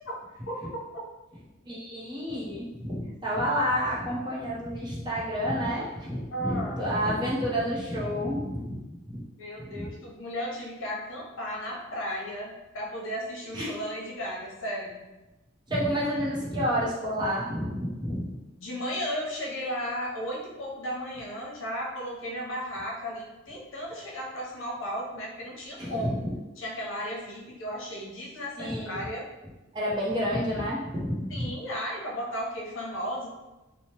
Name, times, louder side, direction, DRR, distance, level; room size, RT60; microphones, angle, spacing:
voice 1, 1.7-9.2 9.6-9.9 13.5-13.7 15.7-18.4 25.8-26.2 28.6-29.1 29.7-31.5, equal, 20° right, -6 dB, 0.6 m, -30 dB
voice 2, 6.3-6.8 9.4-15.0 18.6-26.3 26.6-29.2 31.3-33.3, equal, 85° left, -3 dB, 0.8 m, -35 dB
3.0 x 2.0 x 3.1 m, 1.0 s
head